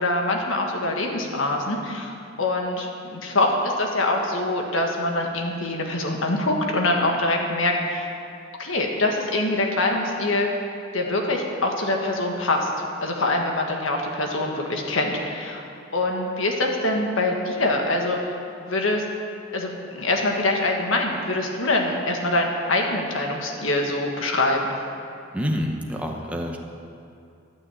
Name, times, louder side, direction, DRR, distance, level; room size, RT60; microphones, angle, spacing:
voice 1, 0.0-8.1 8.6-10.5 10.9-12.7 13.0-15.6 15.9-18.3 18.6-19.0 19.5-24.7, left 2 dB, 75° left, 1 dB, 1.6 m, -24 dB
voice 2, 25.3-26.6, equal, 5° right, 1 dB, 0.8 m, -27 dB
12.0 x 6.3 x 8.9 m, 2.5 s
head